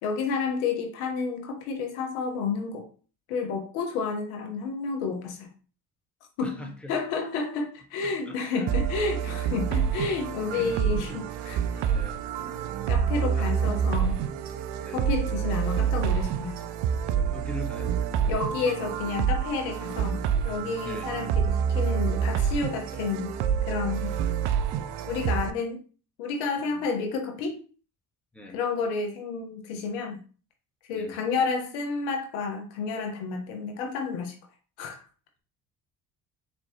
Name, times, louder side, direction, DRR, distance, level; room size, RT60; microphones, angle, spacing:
voice 1, 0.0-2.8 3.3-5.5 6.4-6.6 6.9-11.9 12.9-14.2 14.9-16.6 18.3-23.4 23.6-24.1 25.1-25.8 26.2-27.6 28.5-30.2 30.9-34.3 34.8-35.0, left 4 dB, 80° left, 3 dB, 1.0 m, -30 dB
voice 2, 6.4-7.0 8.0-8.8 10.5-11.5 11.9-12.3 13.3-13.6 14.8-15.1 17.1-17.9 20.8-21.1 26.6-26.8 28.3-28.6 30.9-31.1, left 1 dB, ahead, 3 dB, 1.0 m, -42 dB
sound 1, 8.7-25.5, right 8 dB, 65° right, 0.5 m, -27 dB
4.2 x 3.1 x 2.8 m, 0.37 s
hypercardioid pair, 55°, 46 cm